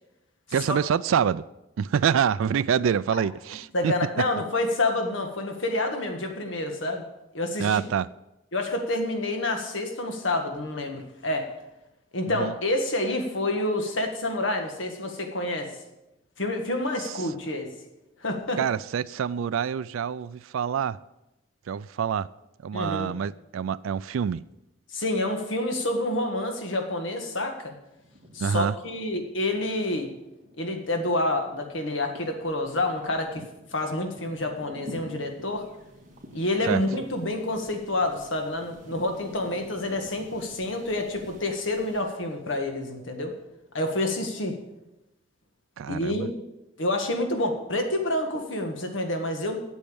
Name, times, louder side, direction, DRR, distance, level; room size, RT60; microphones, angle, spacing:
voice 1, 0.5-1.4 1.8-3.9 7.6-8.1 12.3-12.5 17.0-17.3 18.6-21.0 21.7-22.3 22.6-24.4 28.4-28.7 36.7-36.8 45.8-46.3, right 7 dB, 75° right, 0.3 m, -26 dB
voice 2, 3.7-7.0 7.3-7.8 8.5-11.5 12.1-15.7 16.4-17.7 18.2-18.6 22.7-23.1 24.9-27.7 28.3-30.1 30.6-33.4 33.7-35.7 36.3-43.3 43.7-44.6 45.9-46.3 46.8-49.6, left 1 dB, 65° left, 1.7 m, -28 dB
sound 1, 27.3-27.5 27.8-42.0, equal, 40° right, 2.0 m, -49 dB
8.5 x 8.1 x 8.7 m
head